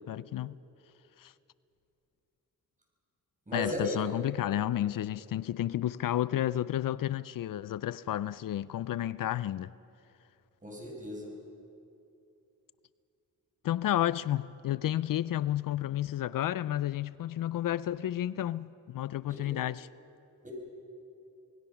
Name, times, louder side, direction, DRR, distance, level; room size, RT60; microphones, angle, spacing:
voice 1, 0.1-0.6 1.2-1.3 3.5-9.7 13.6-19.9, left 12 dB, 75° left, 0.5 m, -31 dB
voice 2, 3.5-4.0 10.6-11.3 19.3-19.5 20.4-20.5, left 1 dB, 25° right, 6.4 m, -36 dB
27.5 x 19.5 x 5.8 m
cardioid pair, 85°, 34 cm